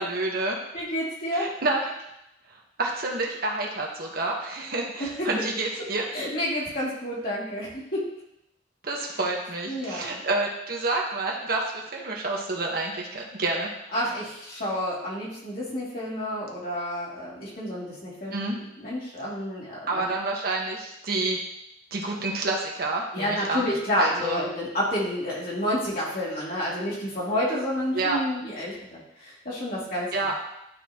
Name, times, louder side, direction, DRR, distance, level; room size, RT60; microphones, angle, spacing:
voice 1, 0.0-0.6 1.3-1.8 2.8-6.0 8.8-13.7 18.3-18.6 19.9-21.4 21.9-23.7 24.0-24.4 27.9-28.2 30.1-30.3, right 2 dB, 55° right, -1 dB, 1.3 m, -28 dB
voice 2, 0.7-1.5 5.0-5.3 6.1-8.0 9.7-10.2 13.9-20.1 23.1-30.1, equal, 50° left, -7 dB, 2.8 m, -30 dB
11.5 x 4.0 x 3.0 m, 0.82 s
head